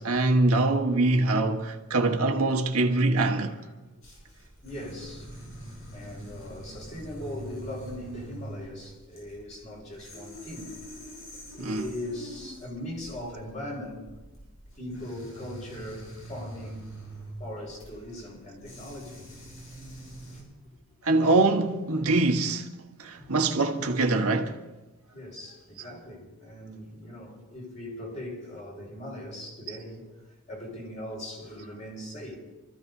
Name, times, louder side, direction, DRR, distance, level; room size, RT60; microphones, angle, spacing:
voice 1, 0.0-3.6 11.6-11.9 21.0-22.7 23.0-24.5, right 2 dB, 85° right, 1.4 m, -24 dB
voice 2, 3.2-3.7 4.6-5.3 5.9-10.7 11.3-14.0 14.8-16.9 17.4-19.2 20.1-20.4 23.1-23.4 23.7-23.9 25.1-30.1 30.5-32.4, left 1 dB, 35° left, 4.8 m, -40 dB
sound 1, 4.0-20.4, equal, 65° left, 6.9 m, -44 dB
28.0 x 14.5 x 2.7 m
head